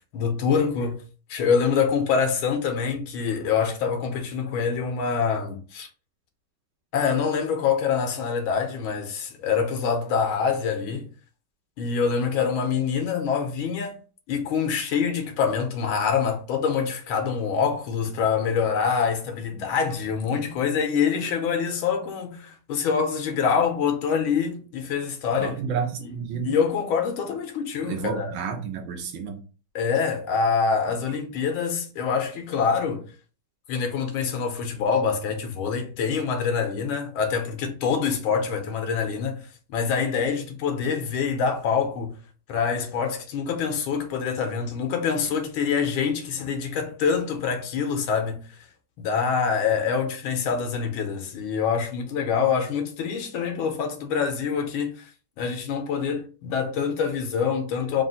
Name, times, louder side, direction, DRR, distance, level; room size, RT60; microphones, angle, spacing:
voice 1, 0.1-1.0 1.3-5.9 6.9-11.1 11.8-14.0 14.3-25.6 26.0-26.1 26.4-28.3 29.7-33.0 33.7-39.4 39.7-42.1 42.5-48.7 49.0-55.1 55.4-58.0, left 6 dB, 80° left, 1.7 m, -25 dB
voice 2, 25.4-26.6 27.8-29.4, right 6 dB, 75° right, 1.6 m, -30 dB
4.2 x 2.4 x 4.0 m
omnidirectional pair, 2.2 m